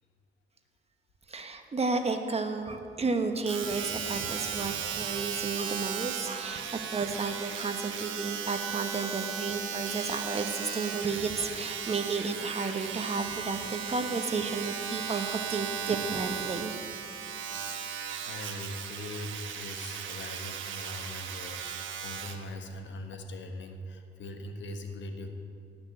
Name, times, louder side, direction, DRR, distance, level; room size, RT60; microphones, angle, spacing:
voice 1, 1.3-6.7 6.9-16.7, right 4 dB, 30° right, 6 dB, 1.2 m, -32 dB
Domestic sounds home sounds, 3.5-22.4 23.1-23.2, right 7 dB, 75° right, 1.2 m, -36 dB
voice 2, 18.2-25.3, left 1 dB, 70° left, 5 dB, 1.5 m, -41 dB
17.5 x 6.4 x 8.1 m, 2.5 s
cardioid pair, 90°, 20 cm